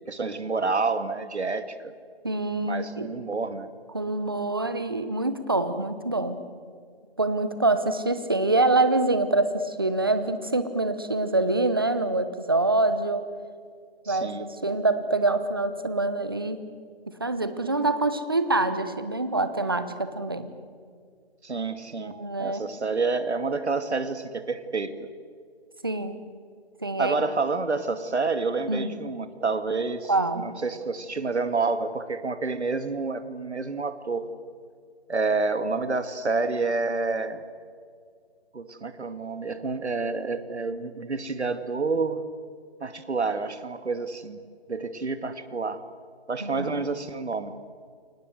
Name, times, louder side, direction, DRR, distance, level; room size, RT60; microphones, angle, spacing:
voice 1, 0.1-1.9 2.7-3.7 14.1-14.5 21.4-25.1 27.0-30.1 30.4-34.3 35.1-37.4 38.5-42.2 42.8-44.4 44.7-45.8 46.3-47.5, right 4 dB, 85° right, 10 dB, 2.4 m, -28 dB
voice 2, 2.2-3.1 3.9-6.4 7.2-13.3 14.1-14.3 14.6-16.6 17.1-20.5 22.0-22.7 25.8-26.2 26.8-27.1 28.7-28.9 30.1-30.5 46.4-46.7, right 2 dB, 20° right, 11 dB, 0.9 m, -25 dB
29.0 x 24.5 x 7.9 m, 2.1 s
hypercardioid pair, 175°, 33 cm